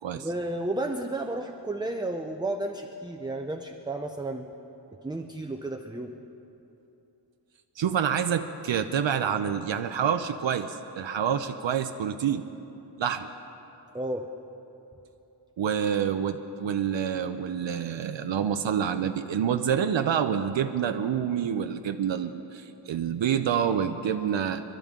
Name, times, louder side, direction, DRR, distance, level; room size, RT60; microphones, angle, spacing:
voice 1, 0.1-4.5 5.0-6.1 13.9-14.3, right 2 dB, 10° right, 3 dB, 0.6 m, -32 dB
voice 2, 7.8-12.4 13.0-13.3 15.6-24.6, right 8 dB, 70° right, 8 dB, 0.7 m, -27 dB
28.0 x 12.5 x 3.7 m, 2.9 s
wide cardioid pair, 125°, 46 cm